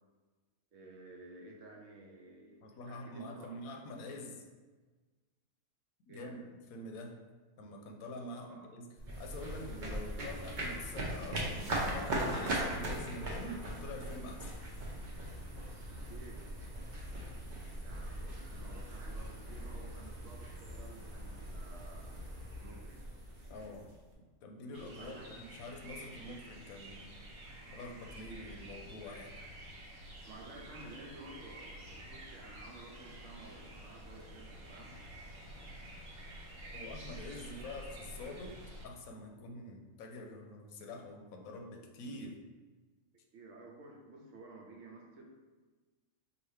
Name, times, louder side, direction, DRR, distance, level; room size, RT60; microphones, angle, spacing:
voice 1, 0.7-3.5 6.1-6.4 8.4-8.7 15.9-16.5 17.8-22.2 22.5-23.0 25.0-25.4 30.2-35.0 43.3-45.3, right 2 dB, 70° right, 0 dB, 1.0 m, -53 dB
voice 2, 2.6-4.4 6.1-6.4 6.7-7.2 7.6-8.9 9.2-14.5 23.5-23.9 24.4-25.2 25.5-27.2 27.7-29.3 36.7-38.6 38.8-42.4, left 2 dB, 85° left, 2 dB, 1.0 m, -46 dB
sound 1, 9.0-24.1, right 1 dB, 45° right, 0.7 m, -40 dB
sound 2, 24.7-38.9, right 1 dB, 85° right, 1.3 m, -49 dB
4.8 x 2.7 x 3.2 m, 1.3 s
omnidirectional pair, 1.4 m